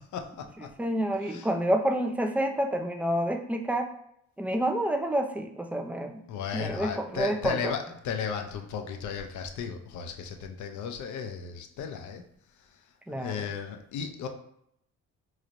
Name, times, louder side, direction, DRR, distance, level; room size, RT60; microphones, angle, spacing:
voice 1, 0.1-0.7 1.2-1.5 6.3-12.2 13.1-14.3, left 6 dB, 75° left, 5 dB, 0.6 m, -35 dB
voice 2, 0.8-3.9 4.4-6.2 6.5-7.6 13.1-13.5, right 1 dB, 5° right, 4 dB, 0.4 m, -28 dB
4.0 x 3.1 x 2.5 m, 0.73 s
cardioid pair, 90°, 30 cm